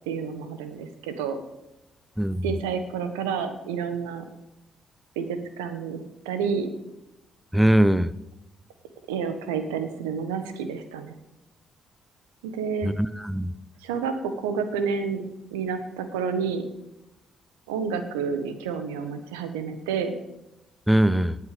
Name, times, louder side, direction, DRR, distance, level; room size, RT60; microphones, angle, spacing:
voice 1, 0.1-1.4 2.4-4.3 5.1-6.7 9.1-11.1 12.4-12.9 13.8-15.2 15.5-16.6 17.7-20.1, right 6 dB, 85° right, 9 dB, 1.3 m, -29 dB
voice 2, 7.5-8.1 12.8-13.5 20.9-21.4, right 1 dB, ahead, 16 dB, 0.8 m, -21 dB
19.0 x 8.4 x 5.2 m, 0.90 s
hypercardioid pair, 45°, 0 cm